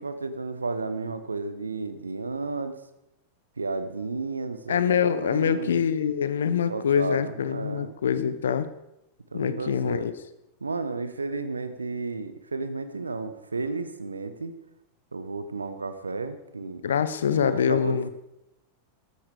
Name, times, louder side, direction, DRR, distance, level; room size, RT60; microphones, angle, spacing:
voice 1, 0.0-2.8 3.6-5.8 6.6-8.0 9.3-10.1 10.6-14.5 15.1-16.8 17.3-18.1, right 3 dB, 75° right, 10 dB, 1.2 m, -33 dB
voice 2, 4.7-8.7 9.3-10.1 16.8-18.1, left 7 dB, 65° left, 13 dB, 1.0 m, -25 dB
13.5 x 12.5 x 5.0 m, 0.88 s
figure-of-eight pair, 90°, 0 cm